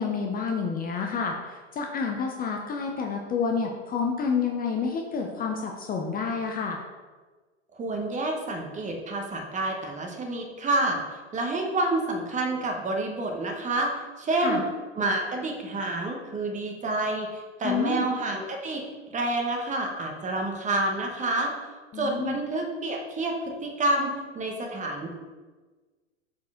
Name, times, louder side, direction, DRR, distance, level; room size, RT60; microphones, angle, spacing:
voice 1, 0.0-6.8 14.4-14.6 17.6-18.1 21.9-22.4, left 5 dB, 25° left, 2 dB, 0.7 m, -29 dB
voice 2, 7.7-11.0 11.3-14.6 15.0-21.5 21.9-25.2, right 2 dB, 20° right, 2 dB, 1.1 m, -28 dB
7.0 x 4.4 x 3.8 m, 1.3 s
hypercardioid pair, 105°, 37 cm